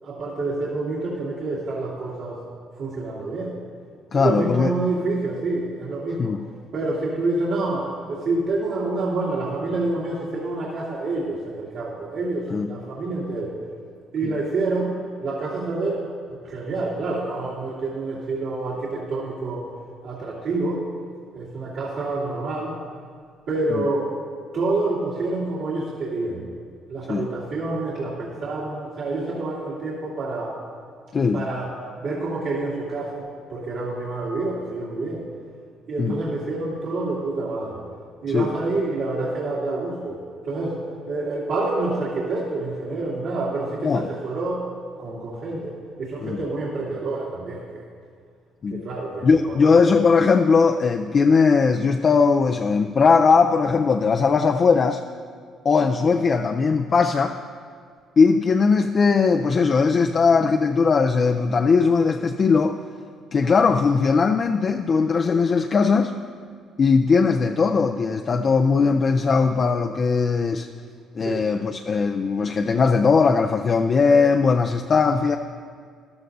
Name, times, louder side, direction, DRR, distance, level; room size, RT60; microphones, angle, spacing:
voice 1, 0.0-2.4 2.8-3.5 4.1-6.3 6.7-13.6 14.1-19.6 20.0-20.9 21.3-22.8 23.5-24.2 24.5-26.4 26.9-30.5 31.3-31.7 32.0-35.2 35.9-37.8 38.2-44.6 45.0-47.9 48.7-49.7 71.2-71.5, right 2 dB, 70° right, -10 dB, 2.5 m, -27 dB
voice 2, 4.1-4.7 6.2-6.4 12.5-12.7 14.2-14.3 23.7-23.8 27.1-27.3 31.1-31.5 36.0-36.2 38.3-38.5 43.8-44.1 46.2-46.4 48.6-48.8 49.2-55.0 55.6-57.4 58.2-62.8 63.3-66.1 66.8-70.7 71.2-75.4, left 5 dB, 35° left, 5 dB, 0.4 m, -19 dB
14.0 x 12.0 x 2.6 m, 2.1 s
cardioid pair, 120°, 0 cm